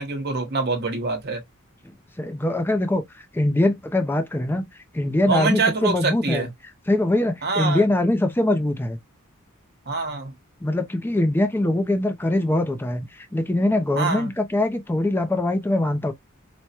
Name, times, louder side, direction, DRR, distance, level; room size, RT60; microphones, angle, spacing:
voice 1, 0.0-1.4 5.3-6.5 7.4-7.9 9.9-10.3 13.9-14.3, right 3 dB, 50° right, 1.1 m, -25 dB
voice 2, 2.2-4.7 4.9-6.5 6.9-9.0 10.6-16.1, left 1 dB, 10° left, 0.4 m, -22 dB
4.6 x 2.1 x 2.8 m
head